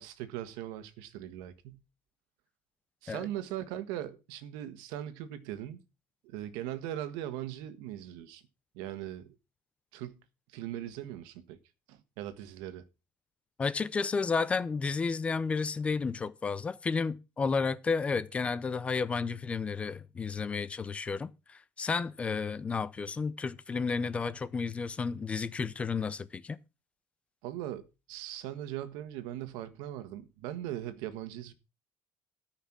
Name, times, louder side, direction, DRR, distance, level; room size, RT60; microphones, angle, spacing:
voice 1, 0.0-1.8 3.0-5.8 6.2-8.4 8.7-9.3 9.9-10.2 10.5-11.6 11.9-12.8 27.4-31.5, right 12 dB, 90° right, 1.5 m, -40 dB
voice 2, 13.6-26.6, left 5 dB, 15° left, 0.5 m, -32 dB
13.5 x 5.8 x 6.0 m
cardioid pair, 175°, 7 cm